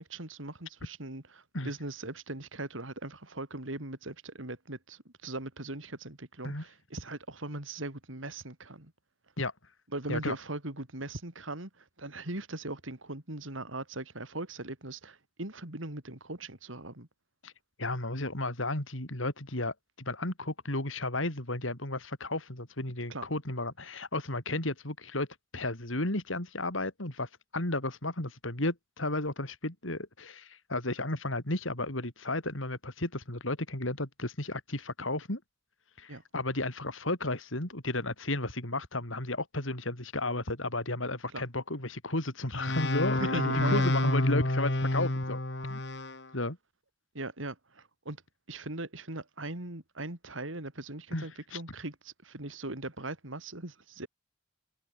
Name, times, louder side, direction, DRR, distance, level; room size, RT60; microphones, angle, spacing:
voice 1, 0.0-8.9 9.9-17.1 23.1-23.3 36.1-36.2 41.3-41.4 43.2-44.4 47.1-48.2 48.5-54.1, right 2 dB, 85° right, 4.0 m, -39 dB
voice 2, 17.8-25.3 25.5-35.4 36.0-45.4 45.7-45.8 46.3-46.6 51.1-51.6, left 2 dB, 90° left, 4.9 m, -33 dB
sound 1, 42.6-46.2, left 1 dB, 60° left, 2.2 m, -28 dB
head